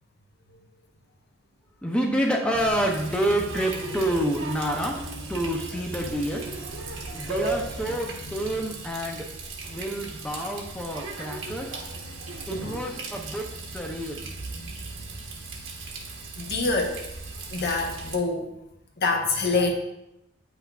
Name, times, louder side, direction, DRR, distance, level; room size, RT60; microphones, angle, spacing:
voice 1, 1.8-5.0 5.3-6.4 7.1-9.3 9.7-11.7 12.5-14.3, right 1 dB, 5° left, 0 dB, 0.5 m, -28 dB
Water tap faucet, 2.5-18.1, right 2 dB, 75° right, 1.1 m, -36 dB
voice 2, 12.5-12.8 16.4-17.0 17.5-18.6 19.0-19.7, left 3 dB, 55° left, 3 dB, 0.9 m, -26 dB
8.3 x 5.7 x 2.3 m, 0.88 s
head